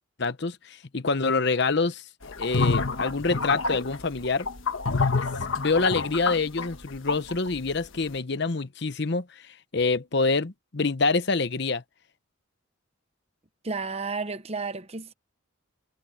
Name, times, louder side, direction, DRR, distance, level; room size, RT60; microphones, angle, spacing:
voice 1, 0.2-4.5 5.5-11.8, left 3 dB, 55° left, 0.9 m, -26 dB
sound 1, 2.3-7.6, left 4 dB, 75° left, 1.3 m, -27 dB
voice 2, 13.6-15.1, right 4 dB, 30° right, 1.0 m, -32 dB
head